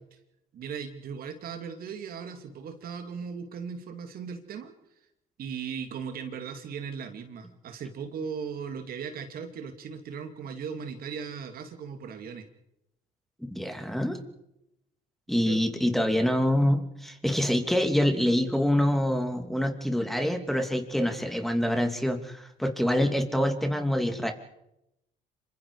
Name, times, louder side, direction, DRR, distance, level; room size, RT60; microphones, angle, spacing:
voice 1, 0.5-4.7 5.4-12.5 15.4-15.7, right 6 dB, 60° right, 6 dB, 2.7 m, -38 dB
voice 2, 13.5-14.2 15.3-24.3, equal, ahead, 5 dB, 2.8 m, -26 dB
27.0 x 24.5 x 4.9 m, 0.84 s
cardioid pair, 110°, 17 cm